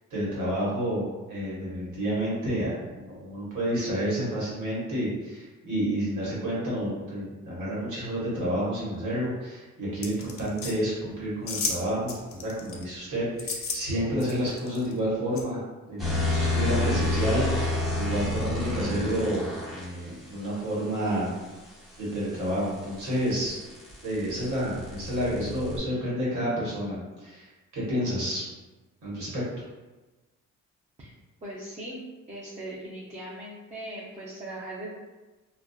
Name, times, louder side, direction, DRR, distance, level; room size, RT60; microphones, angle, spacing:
voice 1, 0.1-15.6 15.9-21.3 22.0-23.6 24.0-27.5 27.7-28.4 29.0-29.4, equal, 75° right, -7 dB, 1.2 m, -30 dB
sound 1, 10.0-10.7 11.5-11.8 12.1-12.8 13.4-13.8 14.2-14.9 15.3-15.4, left 5 dB, 45° left, 0.5 m, -32 dB
sound 2, 16.0-19.9 22.1-25.8, left 2 dB, ahead, 1.1 m, -29 dB
voice 2, 31.4-32.0 32.3-34.9, right 1 dB, 25° right, -7 dB, 0.6 m, -39 dB
2.5 x 2.2 x 2.3 m, 1.2 s
cardioid pair, 90°, 30 cm